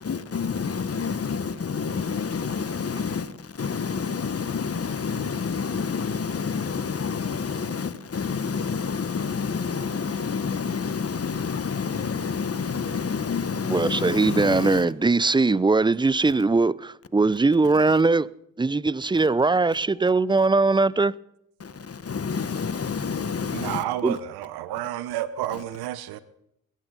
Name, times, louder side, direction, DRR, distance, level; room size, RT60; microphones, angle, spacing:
voice 1, 0.0-14.8 21.6-23.8, left 5 dB, 40° left, 1.4 m, -28 dB
voice 2, 13.7-18.3 18.6-21.1 24.0-24.2, right 3 dB, 10° right, 0.5 m, -21 dB
voice 3, 23.5-26.2, right 12 dB, 75° right, 1.0 m, -30 dB
21.0 x 16.5 x 4.1 m
hypercardioid pair, 45°, 38 cm